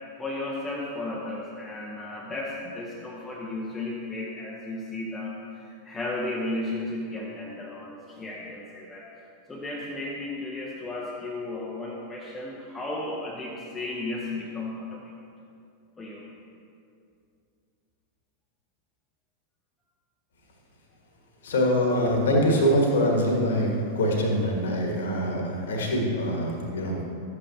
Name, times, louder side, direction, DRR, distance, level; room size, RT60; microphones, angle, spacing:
voice 1, 0.2-9.1 9.5-15.1 16.0-16.2, left 2 dB, 15° left, -4 dB, 1.0 m, -34 dB
voice 2, 21.4-27.1, equal, 60° left, 0 dB, 1.6 m, -24 dB
12.5 x 8.5 x 2.8 m, 2.5 s
figure-of-eight pair, 90°, 0 cm